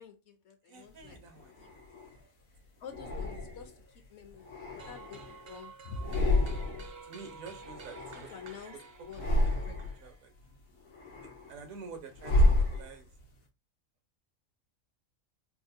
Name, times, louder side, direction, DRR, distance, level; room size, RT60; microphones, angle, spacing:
voice 1, 0.0-1.2 1.6-1.7 2.8-6.0 6.5-7.4 8.1-9.9, left 5 dB, 65° left, 0.8 m, -49 dB
voice 2, 0.7-1.5 7.0-8.3 8.7-8.8 9.2-9.6 10.0-10.3 11.5-13.1, right 5 dB, 80° right, 1.3 m, -48 dB
sound 1, 1.0-2.2 2.9-3.8 4.3-5.5 5.9-7.0 7.2-8.6 9.0-10.1 10.5-13.3, left 1 dB, 90° left, 1.3 m, -31 dB
sound 2, 4.8-10.4, right 5 dB, 60° right, 0.7 m, -51 dB
4.3 x 2.0 x 2.7 m
omnidirectional pair, 1.4 m